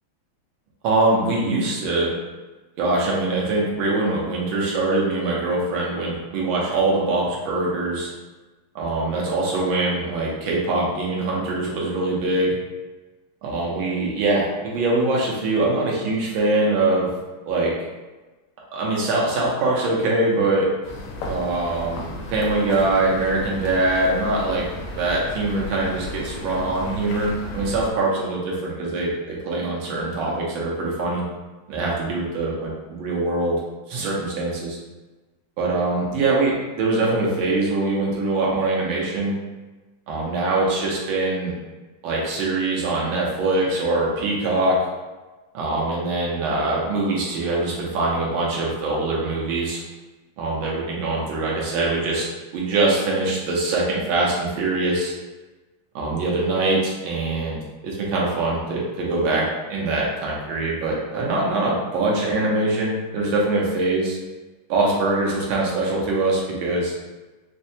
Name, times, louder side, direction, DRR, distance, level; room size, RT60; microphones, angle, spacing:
voice 1, 0.8-2.1 2.8-8.1 8.7-12.6 13.4-17.1 17.5-17.7 18.7-20.7 21.3-24.7 24.9-31.2 31.7-33.6 33.9-34.8 35.6-39.4 40.1-41.5 42.0-44.8 45.5-49.8 50.4-52.2 52.5-55.1 55.9-59.4 59.7-64.2 64.7-66.9, right 2 dB, 75° right, -4 dB, 1.6 m, -23 dB
sound 1, 20.8-27.9, left 1 dB, 85° left, 1.5 m, -34 dB
4.5 x 2.1 x 2.7 m, 1.2 s
omnidirectional pair, 2.3 m